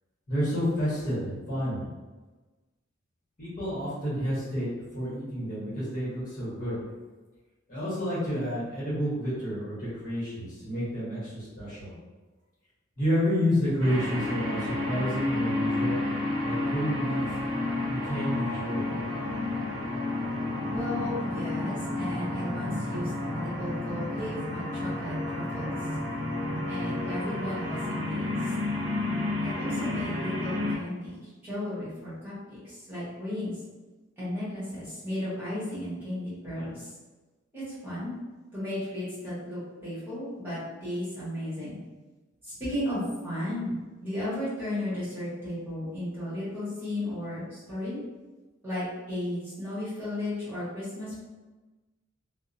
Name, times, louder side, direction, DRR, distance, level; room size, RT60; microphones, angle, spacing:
voice 1, 0.3-1.8 3.4-6.8 7.7-11.9 13.0-16.0 16.4-17.4 17.9-19.0, equal, 45° left, -9 dB, 1.1 m, -30 dB
sound 1, 13.8-30.8, left 2 dB, 70° right, 0.6 m, -31 dB
voice 2, 20.7-25.7 26.7-28.5 29.4-31.1 31.4-33.5 34.2-36.9 37.5-38.1 38.5-41.8 42.4-48.0 48.6-51.2, left 1 dB, 10° right, -12 dB, 1.2 m, -34 dB
2.7 x 2.0 x 2.5 m, 1.2 s
head